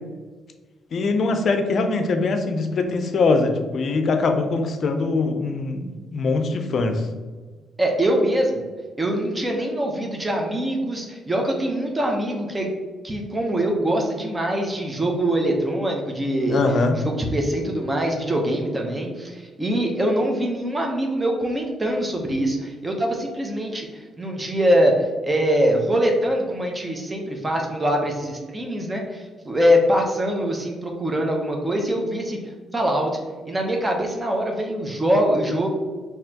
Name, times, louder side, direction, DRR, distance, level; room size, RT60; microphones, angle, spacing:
voice 1, 0.9-7.1 16.5-17.0, left 3 dB, 55° left, 6 dB, 0.5 m, -22 dB
voice 2, 7.8-8.7 9.0-12.7 13.0-16.6 16.9-23.9 24.2-32.4 32.7-33.1 33.4-35.7, equal, 20° right, 1 dB, 0.8 m, -23 dB
4.0 x 2.9 x 2.8 m, 1.4 s
cardioid pair, 90°, 0 cm